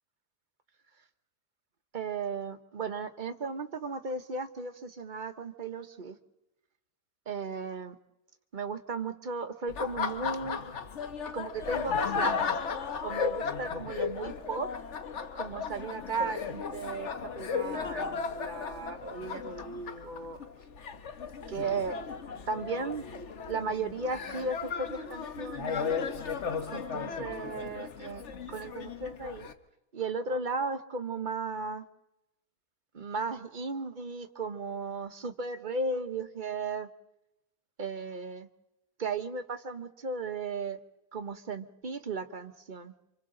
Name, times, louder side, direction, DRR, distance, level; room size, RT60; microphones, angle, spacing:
voice 1, 1.9-6.2 7.3-7.9 8.5-10.7 11.3-12.5 13.0-14.7 15.3-20.4 21.5-22.0 22.5-23.0 23.5-25.9 26.6-28.2 28.5-29.5 29.9-31.8 32.9-36.9 37.8-38.5 39.0-40.8 41.1-42.9, right 4 dB, 35° right, 7 dB, 1.0 m, -35 dB
Laughter, 9.7-29.5, left 6 dB, 50° left, 1.3 m, -35 dB
28.0 x 26.0 x 3.9 m, 0.89 s
omnidirectional pair, 1.6 m